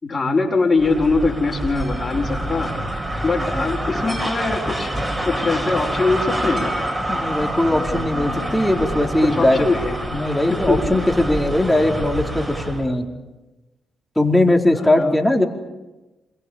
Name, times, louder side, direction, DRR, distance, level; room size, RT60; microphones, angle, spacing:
voice 1, 0.0-2.7 3.2-4.9 5.2-6.8 9.2-9.9 10.7-11.0 12.8-13.0 14.7-15.1, left 3 dB, 35° left, -5 dB, 4.8 m, -22 dB
sound 1, 0.8-12.9, right 1 dB, 20° right, 7.9 m, -26 dB
voice 2, 7.1-9.7 10.1-13.1 14.2-15.4, left 1 dB, 10° left, 2 dB, 4.5 m, -19 dB
27.5 x 23.0 x 7.3 m, 1.1 s
supercardioid pair, 50°, 0 cm